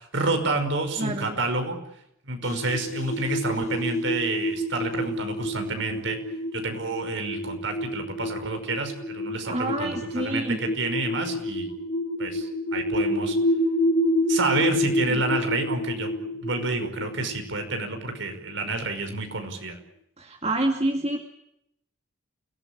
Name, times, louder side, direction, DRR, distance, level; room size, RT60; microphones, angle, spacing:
voice 1, 0.0-1.8 2.2-6.2 6.5-11.7 12.2-13.4 14.3-16.1 16.4-19.8, right 3 dB, 65° right, 6 dB, 5.5 m, -29 dB
voice 2, 1.0-1.4 9.4-10.6 15.1-15.2 20.2-21.2, right 1 dB, 30° right, 3 dB, 2.3 m, -28 dB
sound 1, 2.4-18.7, left 1 dB, 35° left, 1.4 m, -28 dB
29.0 x 18.0 x 8.8 m, 0.77 s
head